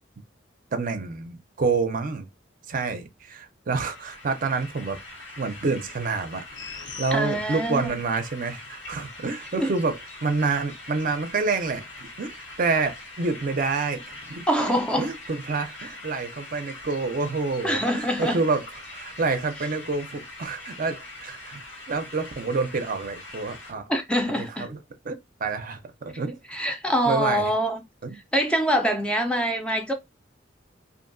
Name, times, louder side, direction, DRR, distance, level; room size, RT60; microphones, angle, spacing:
voice 1, 0.7-2.3 2.7-5.0 5.4-14.5 15.0-18.6 18.9-21.6 21.9-23.9 24.6-24.8 25.1-25.2 25.4-26.4 27.1-27.4 28.0-28.2, right 4 dB, 45° right, 0.5 m, -28 dB
sound 1, 3.8-23.7, left 2 dB, 90° left, 1.4 m, -43 dB
sound 2, 6.5-8.0 8.4-8.5, left 5 dB, 70° left, 0.7 m, -40 dB
voice 2, 7.1-7.9 9.6-9.7 14.5-15.1 15.8-15.9 17.6-18.4 23.9-24.7 26.5-27.8 28.1-29.9, equal, 5° left, 0.4 m, -25 dB
2.6 x 2.6 x 2.5 m
head